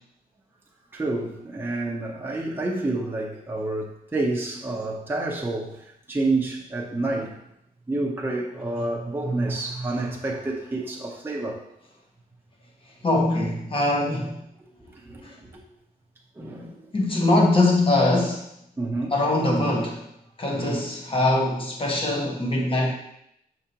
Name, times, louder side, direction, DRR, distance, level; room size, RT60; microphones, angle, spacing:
voice 1, 0.9-7.3 7.9-11.6 14.8-15.6 16.4-16.8 18.8-19.1 20.5-20.8, right 2 dB, 15° right, -3 dB, 0.8 m, -29 dB
voice 2, 13.0-14.3 15.2-15.3 16.9-18.5 19.1-20.1 20.4-22.9, left 2 dB, 35° left, -1 dB, 1.3 m, -22 dB
6.5 x 4.9 x 2.9 m, 0.78 s
wide cardioid pair, 140°, 16 cm